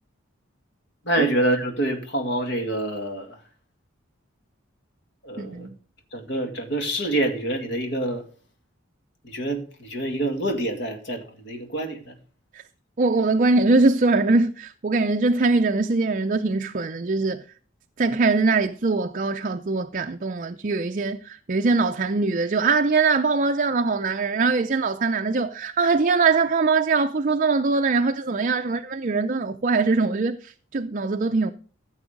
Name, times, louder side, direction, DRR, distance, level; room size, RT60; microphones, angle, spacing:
voice 1, 1.0-3.4 5.2-5.7 6.1-8.2 9.2-12.1, right 1 dB, 55° left, 2.2 m, -26 dB
voice 2, 5.4-5.8 12.5-12.6 13.0-17.4 18.0-31.5, right 3 dB, 40° right, 0.5 m, -22 dB
14.5 x 7.2 x 5.2 m
head